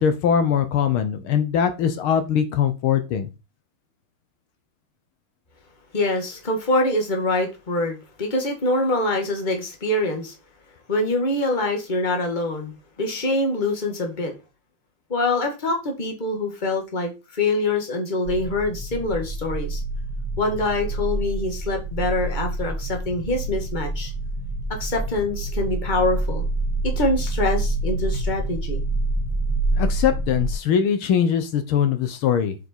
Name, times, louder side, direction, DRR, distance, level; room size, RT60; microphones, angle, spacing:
voice 1, 0.0-3.3 29.8-32.6, left 8 dB, 80° left, 1.7 m, -21 dB
voice 2, 5.9-10.3 10.9-12.7 13.0-14.3 15.1-19.8 20.4-24.1 24.8-26.5 26.8-28.8, left 2 dB, 25° left, 1.8 m, -24 dB
sound 1, 18.3-30.5, right 2 dB, 60° right, 2.6 m, -27 dB
8.1 x 5.0 x 4.5 m
omnidirectional pair, 2.3 m